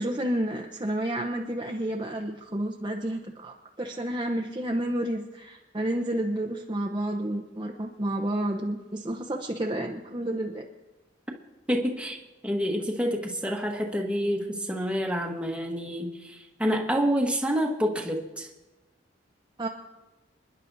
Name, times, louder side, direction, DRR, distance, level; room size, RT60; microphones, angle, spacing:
voice 1, 0.0-10.7 19.6-19.7, right 1 dB, 25° right, 1 dB, 0.8 m, -30 dB
voice 2, 11.7-12.2 12.4-18.5, equal, 5° right, 0 dB, 1.3 m, -28 dB
27.5 x 11.0 x 2.7 m, 1.1 s
head